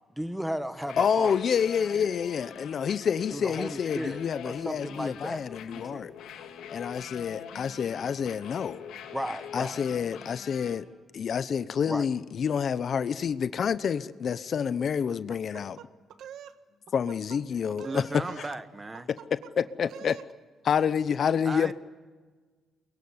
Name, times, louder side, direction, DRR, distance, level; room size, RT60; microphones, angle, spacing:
voice 1, 0.2-1.3 3.3-5.4 5.7-6.1 9.1-9.8 11.9-12.1, equal, 5° right, 1.6 m, -34 dB
sound 1, 0.8-10.8, left 8 dB, 85° left, 2.6 m, -44 dB
voice 2, 1.0-6.1 6.7-8.8 9.5-10.9 11.1-15.8 16.9-18.5 19.1-20.2 20.6-21.7, left 7 dB, 55° left, 0.8 m, -28 dB
sound 2, 15.3-16.6 16.9-17.4 17.7-18.6 18.9-19.5 19.8-20.3, right 9 dB, 75° right, 1.3 m, -46 dB
voice 3, 17.8-19.1 21.4-21.7, right 2 dB, 25° right, 1.5 m, -36 dB
23.0 x 23.0 x 9.7 m
cardioid pair, 90°, 0 cm